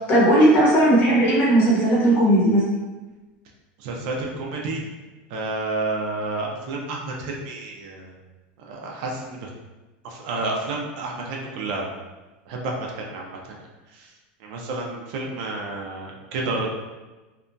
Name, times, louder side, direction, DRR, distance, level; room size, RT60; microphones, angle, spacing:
voice 1, 0.1-2.6, right 1 dB, 30° left, -5 dB, 0.8 m, -17 dB
voice 2, 3.8-4.9 5.3-8.1 8.6-9.5 10.0-11.9 12.5-13.6 13.9-14.1 14.4-16.7, right 2 dB, 55° right, -1 dB, 0.5 m, -30 dB
2.7 x 2.2 x 2.6 m, 1.2 s
supercardioid pair, 170°, 5 cm